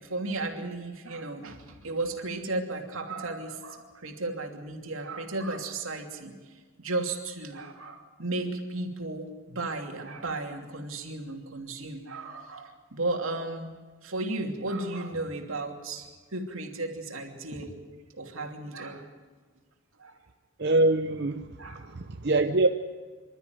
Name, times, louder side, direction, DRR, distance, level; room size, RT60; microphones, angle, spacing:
voice 1, 0.0-6.3 6.8-13.7 14.0-17.7 18.1-19.0 20.0-20.1 21.6-21.9, right 2 dB, 80° right, 3 dB, 2.8 m, -34 dB
voice 2, 20.6-22.7, right 2 dB, 50° right, 6 dB, 0.8 m, -24 dB
26.5 x 13.0 x 9.5 m, 1.4 s
head